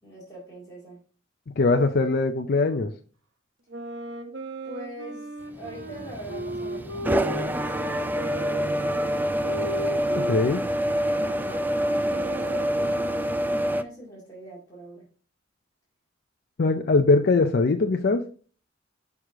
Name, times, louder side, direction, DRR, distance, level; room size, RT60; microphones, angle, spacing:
voice 1, 0.0-1.0 4.6-9.1 9.5-10.7 11.1-13.4 13.7-15.1, right 1 dB, 20° left, -8 dB, 2.3 m, -43 dB
voice 2, 1.6-2.9 10.3-10.6 16.6-18.2, left 3 dB, 55° left, 5 dB, 0.5 m, -21 dB
sound 1, 3.7-10.4 10.8-13.8, right 1 dB, 70° right, 1.2 m, -37 dB
sound 2, 5.6-13.8, equal, 10° right, 0.3 m, -27 dB
6.3 x 4.8 x 3.7 m, 0.40 s
head